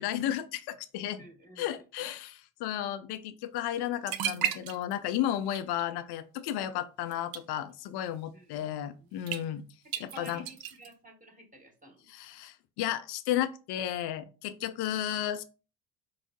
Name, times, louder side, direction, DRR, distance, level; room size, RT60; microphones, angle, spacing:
voice 1, 0.0-1.2 1.6-9.6 10.0-10.4 12.1-15.4, left 11 dB, 55° left, 11 dB, 0.6 m, -33 dB
voice 2, 1.1-1.8 8.3-9.1 9.8-12.1, right 1 dB, 15° right, 1 dB, 1.4 m, -53 dB
sound 1, 3.8-3.9 4.1-5.1 5.5-5.9 7.1-7.4 9.3-9.4 9.9-10.9, right 10 dB, 50° right, 0.6 m, -33 dB
4.6 x 2.1 x 3.6 m, 0.34 s
hypercardioid pair, 60°, 48 cm